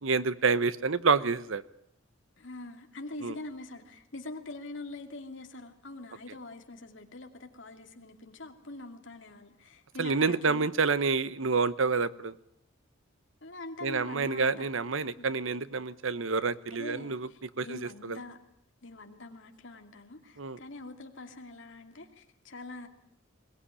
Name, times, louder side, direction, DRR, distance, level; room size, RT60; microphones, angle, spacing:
voice 1, 0.0-1.6 3.2-3.3 10.0-12.3 13.8-17.3 17.6-17.8 18.0-18.2 20.4-20.6, right 4 dB, 70° right, 16 dB, 0.9 m, -28 dB
voice 2, 2.4-10.7 13.4-14.7 15.2-15.3 16.7-18.4 18.8-22.9, left 2 dB, 60° left, 5 dB, 2.7 m, -44 dB
22.0 x 19.0 x 9.9 m, 0.73 s
head